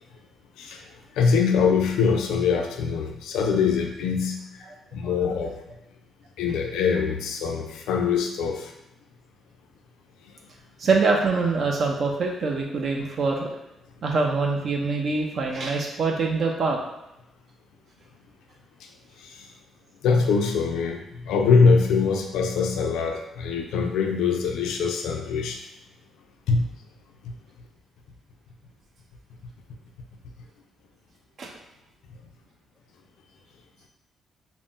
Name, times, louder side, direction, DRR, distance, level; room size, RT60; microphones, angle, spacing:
voice 1, 1.1-4.6 4.9-5.5 6.4-8.7 19.2-19.5 20.0-25.6 26.5-26.7, left 5 dB, 85° left, 3 dB, 0.3 m, -23 dB
voice 2, 10.8-13.5 14.0-16.8 31.4-31.5, right 4 dB, 55° right, 0 dB, 0.4 m, -24 dB
2.5 x 2.0 x 3.6 m, 0.90 s
cardioid pair, 90°, 0 cm